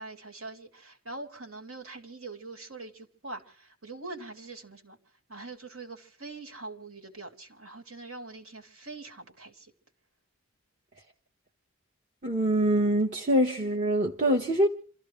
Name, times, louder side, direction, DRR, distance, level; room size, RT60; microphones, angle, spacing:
voice 1, 0.0-5.0 5.3-9.7, right 3 dB, 80° right, 3.5 m, -43 dB
voice 2, 12.2-14.7, right 1 dB, 35° right, 1.3 m, -24 dB
28.5 x 14.5 x 3.3 m
head